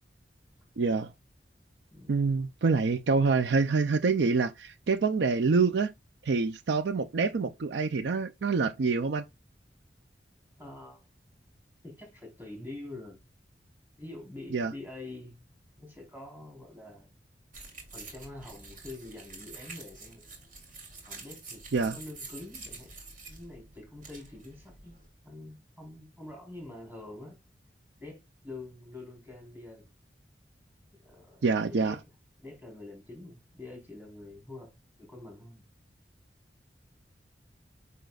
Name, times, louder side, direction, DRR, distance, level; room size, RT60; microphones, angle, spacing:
voice 1, 0.8-1.1 2.1-5.9 6.2-9.2 14.5-14.7 21.7-22.0 31.4-32.0, right 4 dB, 75° right, 0.5 m, -26 dB
voice 2, 10.6-11.0 11.8-13.3 14.0-15.4 15.8-17.2 17.9-20.2 21.0-23.0 23.3-25.0 25.2-27.4 28.0-29.9 31.0-32.0 32.4-34.7 35.0-35.7, left 2 dB, 10° right, 4.1 m, -46 dB
sound 1, 17.5-25.1, right 3 dB, 50° right, 2.2 m, -47 dB
9.1 x 5.6 x 2.4 m
head